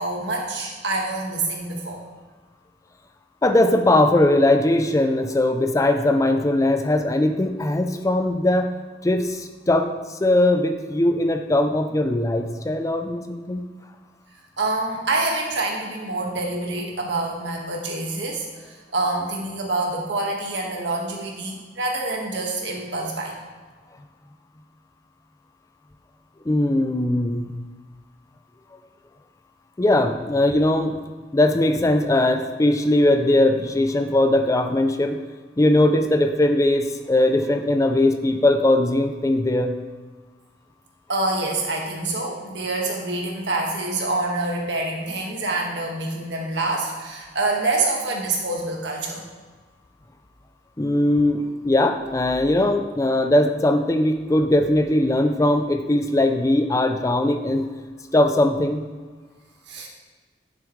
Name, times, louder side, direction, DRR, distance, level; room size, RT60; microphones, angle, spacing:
voice 1, 0.0-2.0 14.6-23.4 41.1-49.2 59.7-59.9, right 2 dB, 80° right, -1 dB, 1.7 m, -26 dB
voice 2, 3.4-8.7 9.0-9.9 10.2-13.6 26.5-27.5 29.8-31.0 31.3-35.2 35.6-39.7 50.8-57.7 58.1-58.8, left 1 dB, 20° left, 7 dB, 0.4 m, -20 dB
10.5 x 7.1 x 3.2 m, 1.4 s
head